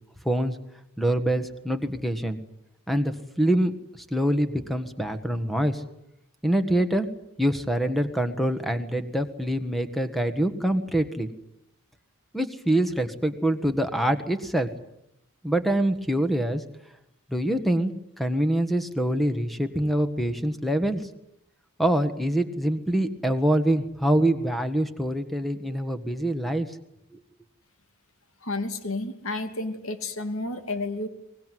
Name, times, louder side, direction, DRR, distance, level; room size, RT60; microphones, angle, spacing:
voice 1, 0.2-0.6 1.0-2.4 2.9-3.7 4.1-5.8 6.4-7.1 7.4-11.3 12.3-14.7 15.4-16.6 17.3-21.0 21.8-26.7 27.1-27.2, right 1 dB, ahead, 8 dB, 1.5 m, -25 dB
voice 2, 28.4-31.1, left 2 dB, 65° left, 8 dB, 2.7 m, -31 dB
23.5 x 19.5 x 9.4 m, 0.81 s
head